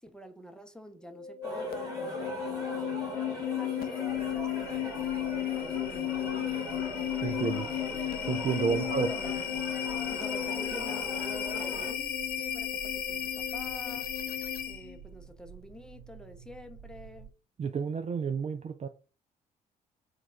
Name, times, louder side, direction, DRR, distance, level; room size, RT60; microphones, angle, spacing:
voice 1, 0.0-6.4 8.7-9.4 10.1-14.1 14.7-17.3, left 1 dB, 5° left, 0.7 m, -48 dB
sound 1, 1.1-15.0, left 10 dB, 50° left, 0.5 m, -34 dB
sound 2, 1.4-11.9, equal, 15° right, 1.7 m, -40 dB
sound 3, 4.0-17.3, right 7 dB, 80° left, 1.4 m, -51 dB
voice 2, 7.2-7.7 8.3-9.1 17.6-18.9, right 6 dB, 35° right, 0.4 m, -30 dB
4.6 x 2.3 x 3.6 m
hypercardioid pair, 45°, 20 cm